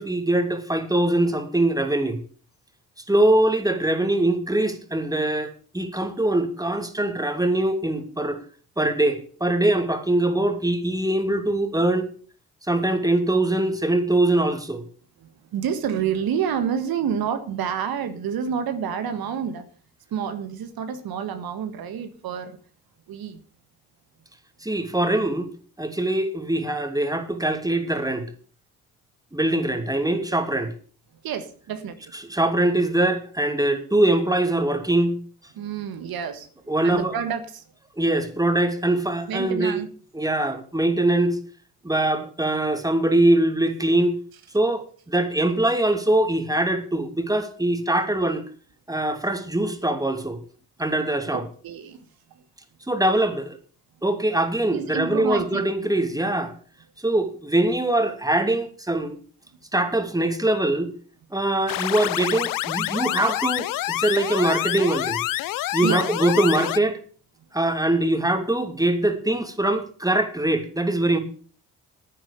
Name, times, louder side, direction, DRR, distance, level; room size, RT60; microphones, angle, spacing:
voice 1, 0.0-2.2 3.1-8.4 8.8-12.1 12.7-14.8 24.6-25.5 25.8-28.3 29.3-30.7 32.3-35.2 36.7-37.2 38.0-39.8 40.1-41.4 41.8-44.2 44.5-48.4 48.9-50.4 50.8-51.4 52.9-53.6 54.0-56.5 57.0-59.2 59.7-60.9 61.3-65.2 65.7-67.0 67.5-71.2, right 1 dB, 10° right, 2.8 m, -22 dB
voice 2, 15.2-19.7 20.1-22.6 23.1-23.4 31.2-32.0 35.5-36.5 36.8-37.6 39.3-39.9 51.3-52.1 52.3-52.4 54.7-55.7 65.8-66.0, right 7 dB, 65° right, 1.6 m, -29 dB
sound 1, 61.7-66.8, left 16 dB, 55° left, 0.5 m, -27 dB
10.0 x 9.5 x 6.9 m
hypercardioid pair, 45°, 39 cm